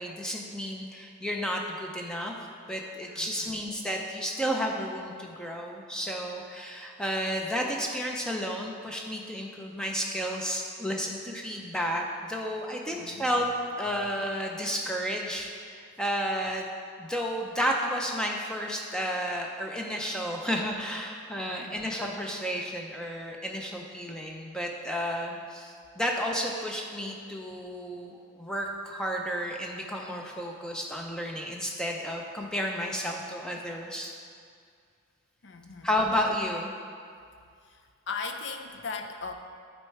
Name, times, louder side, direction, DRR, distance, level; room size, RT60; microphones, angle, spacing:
voice 1, 0.0-2.4 2.7-13.5 13.8-16.7 17.0-34.1 35.8-36.7, equal, 5° left, 0 dB, 0.5 m, -32 dB
voice 2, 3.1-3.7 12.9-13.3 21.4-21.9 35.4-35.9 37.6-39.3, left 4 dB, 55° left, 5 dB, 0.5 m, -39 dB
8.7 x 4.3 x 4.7 m, 2.3 s
head